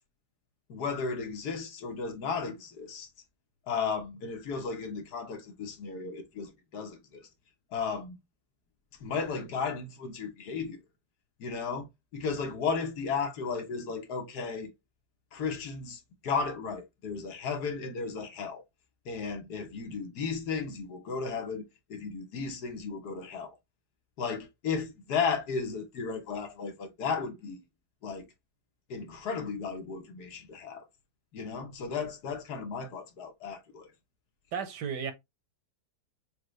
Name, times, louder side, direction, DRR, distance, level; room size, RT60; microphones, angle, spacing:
voice 1, 0.7-3.1 3.7-7.3 7.7-8.2 9.0-10.8 11.4-14.7 15.3-18.6 19.0-21.6 21.9-23.6 24.2-27.6 28.0-28.3 28.9-30.8 31.3-33.8, left 5 dB, 70° left, 1.5 m, -34 dB
voice 2, 34.5-35.1, right 7 dB, 80° right, 1.5 m, -33 dB
6.5 x 2.2 x 3.1 m
omnidirectional pair, 1.8 m